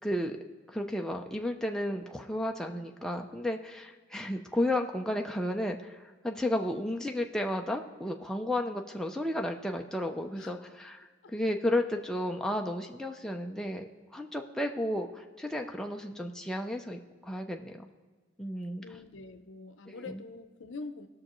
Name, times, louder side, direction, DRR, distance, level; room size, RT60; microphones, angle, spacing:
voice 1, 0.0-0.4 0.7-17.9 18.4-18.8 19.9-20.2, left 1 dB, 5° left, 2 dB, 0.5 m, -33 dB
voice 2, 18.8-21.1, left 3 dB, 75° left, 10 dB, 0.6 m, -44 dB
19.0 x 6.4 x 3.1 m, 1.4 s
head